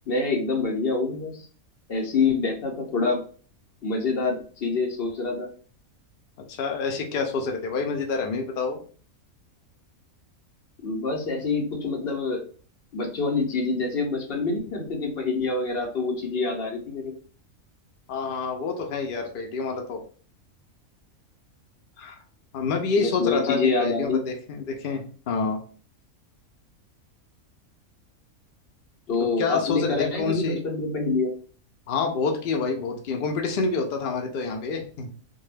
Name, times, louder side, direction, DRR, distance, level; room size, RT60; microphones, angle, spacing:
voice 1, 0.1-1.5 1.9-3.2 3.8-5.5 10.8-12.4 12.9-17.1 23.0-24.3 29.1-31.3, left 4 dB, 55° left, 1 dB, 0.8 m, -26 dB
voice 2, 6.5-8.8 18.1-20.0 22.0-22.2 22.5-25.6 29.4-30.6 31.9-35.1, left 4 dB, 85° left, 3 dB, 0.4 m, -27 dB
2.2 x 2.2 x 3.2 m, 0.41 s
omnidirectional pair, 1.5 m